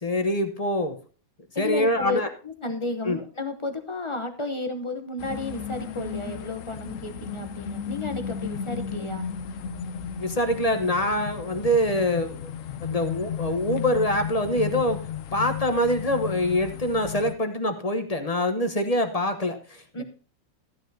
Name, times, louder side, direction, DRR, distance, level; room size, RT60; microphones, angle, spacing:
voice 1, 0.0-1.0 1.6-2.3 3.0-3.2 10.2-12.5 12.8-15.0 15.3-20.0, left 1 dB, 25° left, 7 dB, 0.8 m, -25 dB
voice 2, 1.5-9.3 19.9-20.0, left 2 dB, 45° left, 8 dB, 0.4 m, -32 dB
sound 1, 5.2-17.3, left 8 dB, 70° left, 0.7 m, -34 dB
14.0 x 9.9 x 2.8 m, 0.37 s
omnidirectional pair, 2.1 m